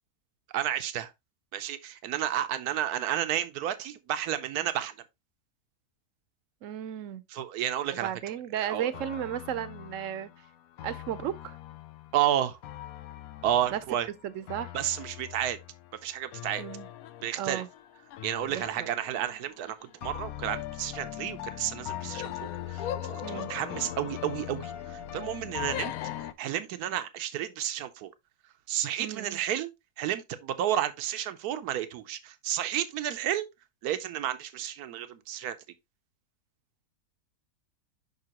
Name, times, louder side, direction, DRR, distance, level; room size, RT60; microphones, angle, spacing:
voice 1, 0.5-1.1 1.5-4.9 7.3-8.1 8.7-9.0 12.1-12.6 13.4-14.1 14.7-15.6 16.0-16.6 17.2-17.6 18.2-28.1 28.7-33.5 33.8-35.6, right 11 dB, 80° right, 1.2 m, -31 dB
voice 2, 6.6-7.2 7.9-10.3 10.8-11.6 13.7-13.8 14.2-14.7 16.6-16.9 17.4-17.7 18.5-18.9 23.2-23.5 29.0-29.4, right 10 dB, 65° right, 1.0 m, -34 dB
sound 1, 8.9-26.3, left 12 dB, 70° left, 1.0 m, -40 dB
6.7 x 5.6 x 2.9 m
omnidirectional pair, 1.6 m